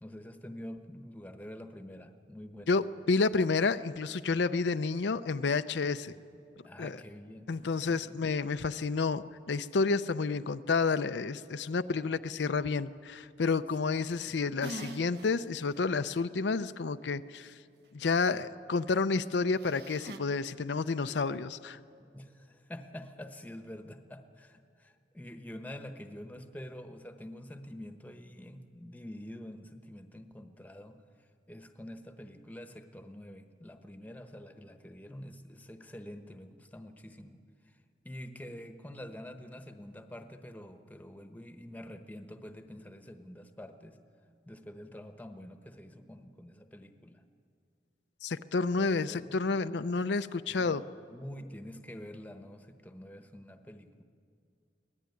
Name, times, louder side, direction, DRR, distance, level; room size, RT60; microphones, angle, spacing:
voice 1, 0.0-2.8 6.1-6.2 6.6-7.5 7.9-8.2 14.0-14.4 18.3-18.5 22.0-31.0 31.5-37.8 38.0-44.0 44.5-47.2 48.7-49.4 50.5-50.8 51.1-54.0, left 1 dB, 10° left, 7 dB, 1.0 m, -47 dB
voice 2, 2.7-6.1 6.8-7.0 7.5-17.6 17.9-21.8 48.2-50.8, left 4 dB, 80° left, 11 dB, 0.6 m, -30 dB
sound 1, 14.6-15.3 15.8-15.9 19.6-20.2, right 1 dB, 65° right, 1.3 m, -42 dB
24.0 x 18.0 x 9.6 m, 2.4 s
head